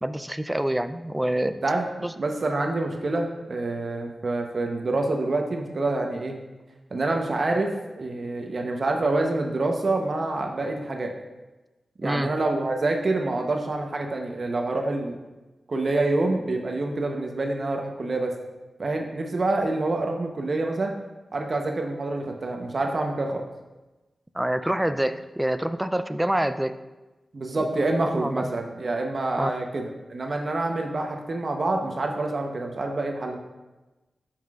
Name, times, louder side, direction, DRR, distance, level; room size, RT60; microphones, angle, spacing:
voice 1, 0.0-1.6 12.0-12.3 24.3-26.8 27.8-28.5 29.4-29.5, right 1 dB, 10° right, 11 dB, 0.4 m, -26 dB
voice 2, 2.2-6.4 6.9-11.1 12.0-15.2 15.7-18.3 18.8-20.9 21.3-23.5 27.3-33.4, right 2 dB, 50° right, 2 dB, 0.8 m, -27 dB
12.5 x 5.8 x 2.4 m, 1.1 s
wide cardioid pair, 100°, 0 cm